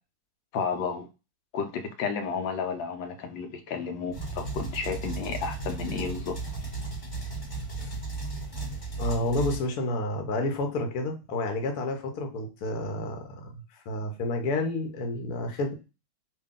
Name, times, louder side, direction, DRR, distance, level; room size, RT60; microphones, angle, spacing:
voice 1, 0.5-1.1 1.5-6.4, left 5 dB, 85° left, 1.4 m, -32 dB
sound 1, 4.1-9.7, right 3 dB, 25° left, 0.7 m, -35 dB
voice 2, 9.0-15.7, left 2 dB, 60° left, 1.1 m, -30 dB
3.1 x 2.6 x 3.6 m
omnidirectional pair, 2.0 m